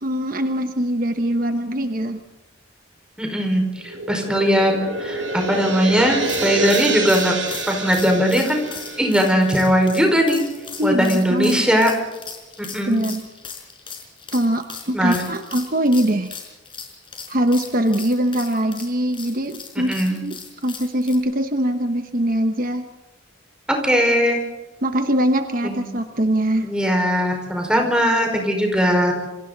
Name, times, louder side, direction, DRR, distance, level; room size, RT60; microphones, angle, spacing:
voice 1, 0.0-2.2 10.8-11.7 12.9-13.3 14.3-16.3 17.3-20.4 20.6-22.9 24.8-26.7, right 1 dB, 45° right, 7 dB, 1.1 m, -22 dB
voice 2, 3.2-4.7 5.0-7.3 7.7-8.6 9.0-10.5 10.8-11.9 12.6-13.0 14.9-15.2 19.9-20.2 23.8-24.4 25.6-25.8 26.6-29.1, equal, 5° right, 2 dB, 5.0 m, -19 dB
sound 1, 3.8-10.4, right 3 dB, 75° right, 5.3 m, -28 dB
Battery hitting Vitamin bottle with few vitamins left, 6.2-21.2, left 6 dB, 25° left, 4.8 m, -37 dB
28.5 x 25.0 x 4.1 m, 1.1 s
head